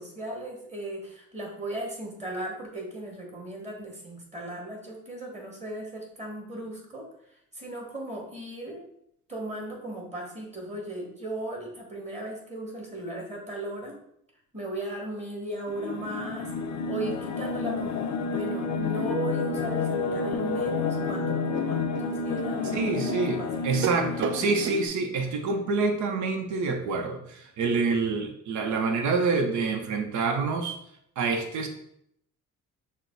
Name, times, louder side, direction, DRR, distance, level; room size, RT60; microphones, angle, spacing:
voice 1, 0.0-8.9 9.3-14.0 14.5-23.8 24.1-24.4, right 1 dB, 20° right, -1 dB, 1.8 m, -37 dB
sound 1, 15.7-24.9, left 4 dB, 70° left, 0.6 m, -30 dB
sound 2, 21.0-21.1 21.5-24.8, right 6 dB, 40° right, 0.5 m, -35 dB
voice 2, 22.7-30.8 31.2-31.7, right 4 dB, 70° right, 4 dB, 0.7 m, -27 dB
6.3 x 2.1 x 3.9 m, 0.73 s
cardioid pair, 90°, 30 cm